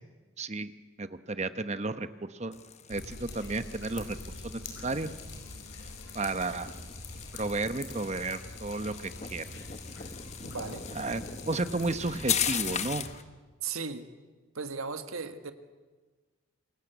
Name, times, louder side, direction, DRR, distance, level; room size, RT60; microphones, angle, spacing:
voice 1, 0.4-0.7 1.0-2.6 2.9-4.2 4.4-5.1 6.1-6.7 7.3-9.5 10.9-13.1, right 2 dB, 30° right, 11 dB, 1.0 m, -33 dB
sound 1, 2.5-13.2, left 8 dB, 30° left, 1.0 m, -38 dB
Drip, 2.9-13.2, left 2 dB, 60° left, 4.9 m, -45 dB
voice 2, 10.4-10.9 13.6-14.1 14.5-15.5, right 5 dB, 80° right, 8 dB, 1.7 m, -36 dB
27.5 x 23.0 x 8.2 m, 1.3 s
head